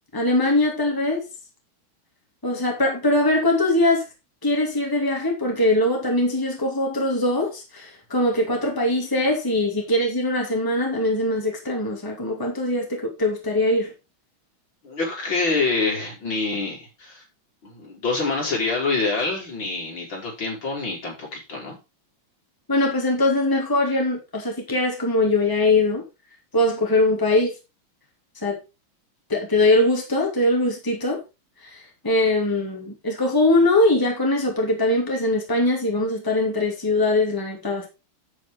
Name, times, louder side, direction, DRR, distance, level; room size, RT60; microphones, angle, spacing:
voice 1, 0.1-1.2 2.4-4.0 4.4-13.9 22.7-26.0 26.5-27.5 28.4-28.6 29.3-31.2 31.6-37.9, left 2 dB, 10° left, 2.5 m, -22 dB
voice 2, 14.8-17.2 17.6-21.8, left 3 dB, 65° left, 5.1 m, -26 dB
9.1 x 8.5 x 3.7 m
omnidirectional pair, 2.3 m